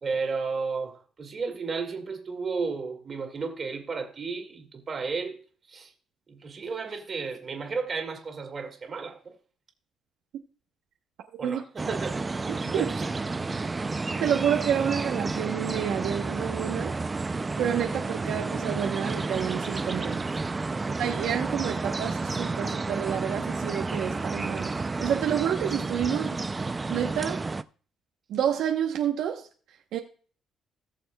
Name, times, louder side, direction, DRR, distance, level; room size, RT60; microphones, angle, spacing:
voice 1, 0.0-5.4 5.7-5.9 6.3-9.3 11.4-12.2 12.6-13.1 20.7-20.8, right 4 dB, 35° right, 2.0 m, -33 dB
sound 1, 11.8-27.6, right 3 dB, 20° right, 0.4 m, -31 dB
voice 2, 14.2-16.9 17.6-20.2 21.0-26.4 26.9-27.4 28.3-29.5 29.9-30.0, right 9 dB, 75° right, 0.8 m, -29 dB
18.0 x 6.8 x 2.2 m
cardioid pair, 130°, 0 cm